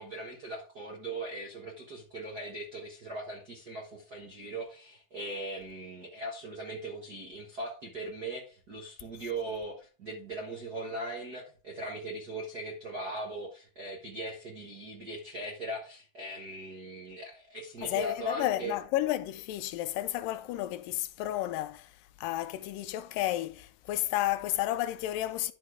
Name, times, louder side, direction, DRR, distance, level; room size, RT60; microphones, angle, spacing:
voice 1, 0.0-18.7, right 2 dB, 60° right, 1.0 m, -39 dB
voice 2, 17.8-21.9 22.2-25.5, left 14 dB, 85° left, 2.3 m, -32 dB
11.0 x 4.4 x 4.8 m
omnidirectional pair, 3.9 m